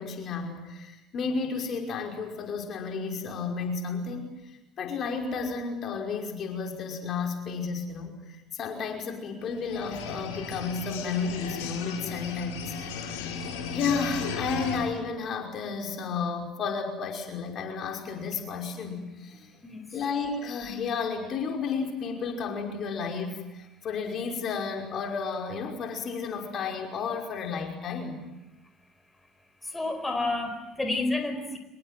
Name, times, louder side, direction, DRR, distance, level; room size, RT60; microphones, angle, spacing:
voice 1, 0.0-4.4 4.8-13.1 13.7-19.5 19.9-28.2, left 5 dB, 45° left, 3 dB, 5.4 m, -32 dB
sound 1, 9.5-14.8, left 5 dB, 70° left, 5.2 m, -35 dB
voice 2, 29.6-31.6, left 2 dB, 10° left, 7 dB, 4.9 m, -30 dB
26.0 x 22.5 x 9.2 m, 0.98 s
figure-of-eight pair, 60°, 0 cm